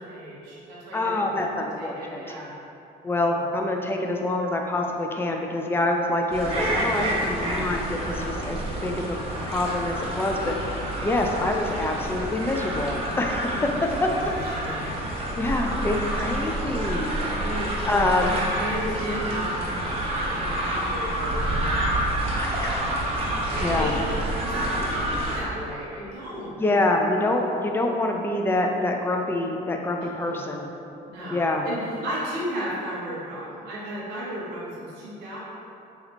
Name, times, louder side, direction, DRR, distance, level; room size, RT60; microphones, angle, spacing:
voice 1, 0.0-2.5 3.1-3.4 13.5-13.8 14.1-14.9 17.3-21.8 23.5-26.7 30.0-30.5 31.1-35.4, equal, 90° right, -7 dB, 1.1 m, -35 dB
voice 2, 0.9-2.3 3.0-10.6 11.0-13.7 14.0-14.1 14.8-14.9 15.3-17.2 17.8-18.3 22.3-23.1 23.6-23.9 26.5-30.7 31.3-31.6, left 2 dB, 15° left, 2 dB, 0.4 m, -26 dB
sound 1, 6.3-25.4, right 1 dB, 35° right, 0.9 m, -28 dB
3.9 x 2.9 x 4.3 m, 2.8 s
cardioid pair, 110°, 17 cm